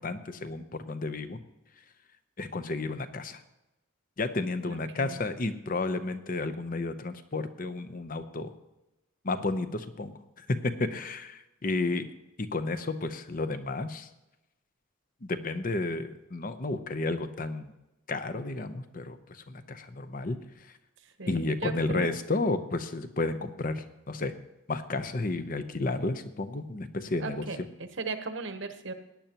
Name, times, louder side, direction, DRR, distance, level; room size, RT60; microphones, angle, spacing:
voice 1, 0.0-1.4 2.4-3.4 4.2-8.5 9.2-10.1 10.9-12.0 12.4-14.1 15.2-17.7 18.1-19.2 19.5-20.4 21.3-24.3 24.7-27.5, left 2 dB, 40° left, 10 dB, 0.7 m, -32 dB
voice 2, 4.6-5.2 21.2-22.1 27.2-28.9, right 3 dB, 60° right, 8 dB, 1.0 m, -37 dB
17.0 x 10.5 x 3.0 m, 0.95 s
head